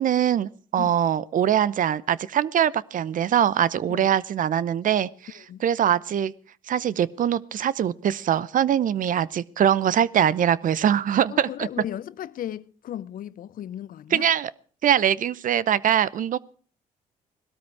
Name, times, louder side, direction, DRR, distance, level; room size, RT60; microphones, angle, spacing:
voice 1, 0.0-5.1 5.6-6.3 6.7-11.7 14.1-14.5 14.8-16.4, right 9 dB, 60° right, 0.7 m, -22 dB
voice 2, 5.3-5.7 11.3-14.3, left 11 dB, 65° left, 0.7 m, -36 dB
18.5 x 13.0 x 4.8 m
supercardioid pair, 65°, 15 cm